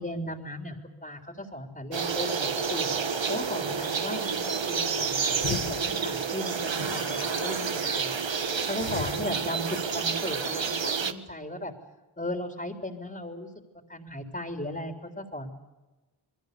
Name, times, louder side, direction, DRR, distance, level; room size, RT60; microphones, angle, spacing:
voice 1, 0.0-8.1 8.6-11.7 12.2-13.5 13.9-15.5, left 1 dB, 20° left, 4 dB, 3.8 m, -36 dB
sound 1, 1.9-11.1, right 5 dB, 70° right, 1.6 m, -29 dB
sound 2, 5.4-8.4 8.8-9.8 10.2-10.3, left 8 dB, 75° left, 1.1 m, -39 dB
29.0 x 22.0 x 6.9 m, 1.1 s
cardioid pair, 50°, 46 cm